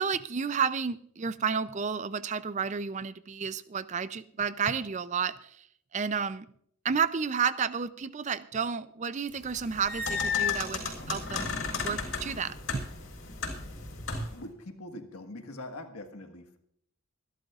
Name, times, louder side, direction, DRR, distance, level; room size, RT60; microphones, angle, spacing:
voice 1, 0.0-5.6 5.9-6.5 6.8-11.5 11.8-12.9, right 6 dB, 30° right, 15 dB, 0.4 m, -31 dB
sound 1, 9.4-14.4, left 5 dB, 60° left, 4.0 m, -33 dB
voice 2, 14.2-16.6, left 1 dB, 85° left, 5 dB, 1.6 m, -43 dB
25.5 x 12.0 x 2.4 m, 0.69 s
head